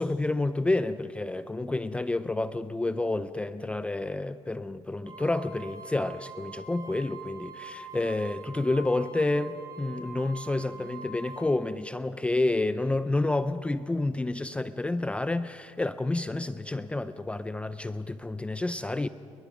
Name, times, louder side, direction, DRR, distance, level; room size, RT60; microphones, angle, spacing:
voice 1, 0.0-19.1, left 2 dB, 10° left, 13 dB, 0.5 m, -29 dB
sound 1, 5.0-11.4, right 4 dB, 30° right, 4.9 m, -44 dB
29.5 x 22.0 x 6.0 m, 2.5 s
cardioid pair, 135°, 12 cm